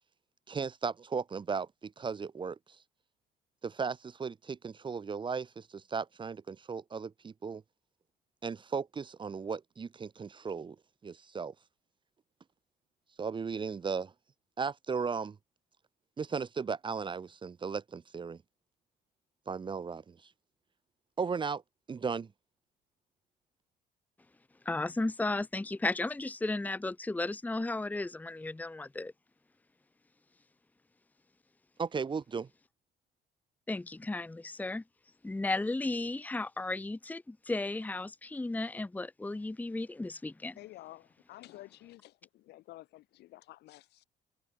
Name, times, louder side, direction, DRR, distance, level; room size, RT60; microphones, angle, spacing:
voice 1, 0.5-2.6 3.6-7.6 8.4-10.8 11.0-11.5 13.2-14.1 14.6-15.4 16.2-18.4 19.5-20.2 21.2-21.6 21.9-22.3 31.8-32.5, right 5 dB, 30° right, 1.2 m, -36 dB
voice 2, 24.6-29.1 33.7-34.8 35.2-40.5, left 2 dB, 10° left, 1.0 m, -34 dB
voice 3, 40.6-44.0, left 17 dB, 80° left, 5.5 m, -51 dB
cardioid pair, 110°, 17 cm